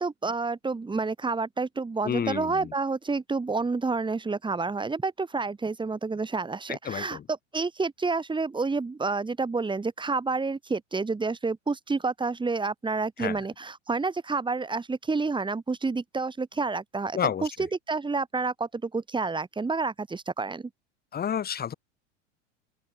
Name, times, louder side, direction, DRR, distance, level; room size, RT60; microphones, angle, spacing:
voice 1, 0.0-7.2 7.5-20.7, right 4 dB, 15° right, 5.6 m, -29 dB
voice 2, 2.0-2.7 6.7-7.3 13.2-13.4 17.1-17.5 21.1-21.7, left 8 dB, 25° left, 3.0 m, -30 dB
open air
figure-of-eight pair, 85°, 36 cm